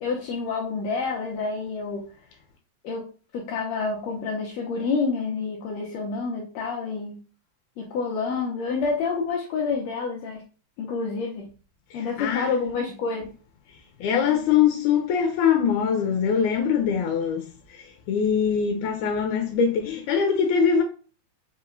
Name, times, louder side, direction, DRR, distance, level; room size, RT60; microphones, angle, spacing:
voice 1, 0.0-2.1 2.8-3.0 3.3-7.2 7.8-10.4 10.8-11.5 11.9-13.3, left 4 dB, 75° left, 1.8 m, -28 dB
voice 2, 11.9-12.5 14.0-20.8, left 7 dB, 90° left, 2.1 m, -23 dB
5.1 x 2.9 x 2.5 m
omnidirectional pair, 3.4 m